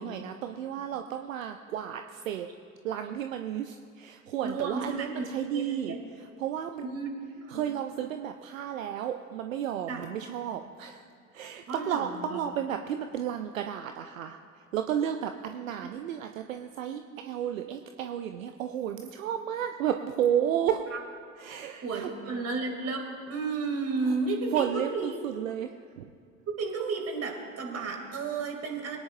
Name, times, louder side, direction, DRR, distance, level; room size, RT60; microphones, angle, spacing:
voice 1, 0.0-2.5 2.8-7.0 7.5-11.0 11.3-14.4 14.7-20.8 21.4-22.1 24.5-26.1, right 9 dB, 70° right, 7 dB, 0.7 m, -32 dB
voice 2, 4.4-5.3 5.5-6.0 6.8-7.1 7.3-7.7 9.9-10.0 11.7-12.4 17.1-17.3 20.9-21.0 21.8-25.2 26.6-29.0, right 4 dB, 35° right, 2 dB, 2.8 m, -33 dB
23.0 x 10.0 x 2.6 m, 2.2 s
figure-of-eight pair, 60°, 41 cm